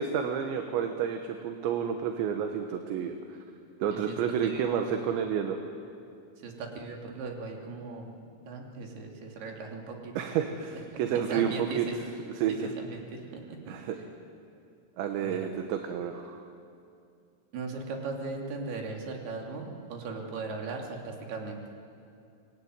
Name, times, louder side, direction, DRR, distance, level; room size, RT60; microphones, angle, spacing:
voice 1, 0.0-3.2 3.8-5.6 10.2-11.9 12.4-12.7 13.7-14.0 15.0-16.4, right 8 dB, 70° right, 5 dB, 3.3 m, -30 dB
voice 2, 3.9-5.1 6.4-8.1 8.5-10.3 10.9-12.0 12.5-13.8 15.2-15.5 17.5-21.6, right 4 dB, 55° right, 1 dB, 4.5 m, -38 dB
25.5 x 22.0 x 9.6 m, 2.5 s
omnidirectional pair, 5.9 m